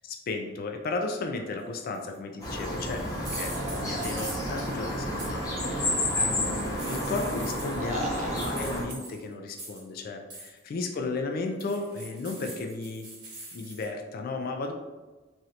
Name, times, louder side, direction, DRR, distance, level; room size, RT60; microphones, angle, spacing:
voice 1, 0.0-13.1 13.5-14.7, left 3 dB, 50° left, 4 dB, 0.3 m, -34 dB
sound 1, 1.9-2.2 3.2-4.7 5.2-5.3 6.4-7.9 8.4-10.0 10.3-10.6 11.6-13.8, right 2 dB, 65° right, 1.3 m, -42 dB
sound 2, 2.4-8.8, left 1 dB, 20° left, 0.8 m, -31 dB
sound 3, 3.5-4.9 5.6-6.7 7.8-8.5, right 1 dB, 35° right, 0.4 m, -39 dB
3.1 x 2.4 x 2.7 m, 1.2 s
head